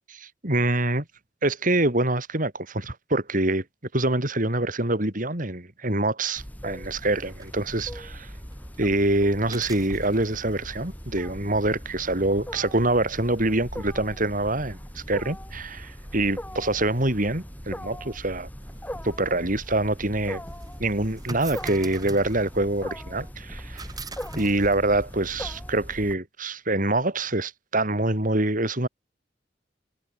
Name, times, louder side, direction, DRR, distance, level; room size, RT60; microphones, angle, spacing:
voice 1, 0.1-1.0 1.4-3.6 3.9-8.3 8.8-18.5 19.0-20.4 20.8-23.8 24.3-28.9, right 2 dB, 45° right, 4.2 m, -25 dB
Wild animals, 6.4-26.1, equal, 10° left, 7.1 m, -40 dB
sound 1, 7.2-25.8, right 2 dB, 20° right, 6.5 m, -46 dB
head